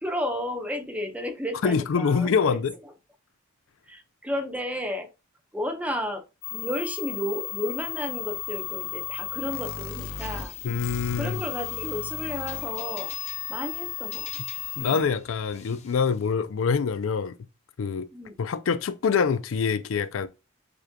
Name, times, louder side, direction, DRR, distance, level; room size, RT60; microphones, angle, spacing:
voice 1, 0.0-2.6 3.9-5.1 5.5-6.2 6.5-10.5 11.2-13.1 13.5-14.3 18.1-18.3, left 1 dB, 5° right, 0.8 m, -32 dB
voice 2, 1.6-2.7 10.6-11.4 14.8-17.3 17.8-18.1 18.4-20.3, left 5 dB, 70° left, 0.4 m, -25 dB
sound 1, 6.4-15.0, left 12 dB, 90° left, 0.8 m, -34 dB
sound 2, 10.0-16.3, left 5 dB, 35° left, 0.7 m, -47 dB
6.9 x 3.1 x 2.2 m
head